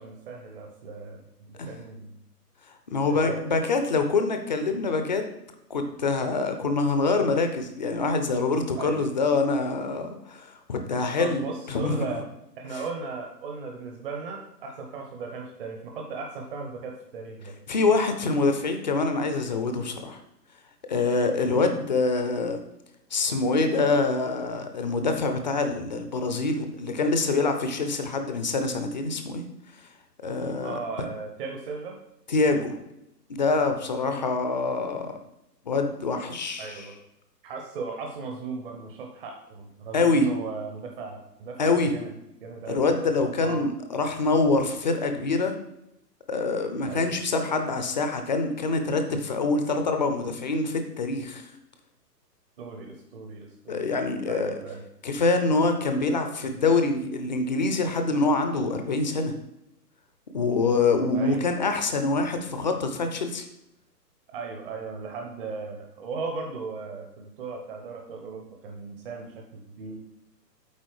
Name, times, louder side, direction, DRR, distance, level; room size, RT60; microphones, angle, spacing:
voice 1, 0.0-2.1 3.1-3.4 8.8-9.0 11.2-12.2 12.6-17.5 21.4-21.7 30.6-32.0 34.0-34.1 36.6-36.9 37.4-42.1 42.4-42.9 43.4-43.6 46.9-47.5 52.6-53.9 54.3-54.8 61.1-61.4 64.3-70.0, right 4 dB, 35° right, 2 dB, 0.9 m, -37 dB
voice 2, 2.9-5.3 5.7-12.1 17.7-20.2 20.9-22.6 23.1-29.5 30.2-30.8 32.3-32.8 33.3-35.1 35.7-36.9 39.9-40.3 41.6-41.9 42.7-45.5 46.3-51.5 53.7-54.5 55.0-59.3 60.3-63.5, left 3 dB, 30° left, 6 dB, 0.5 m, -25 dB
8.4 x 4.3 x 4.7 m, 0.82 s
hypercardioid pair, 140°, 49 cm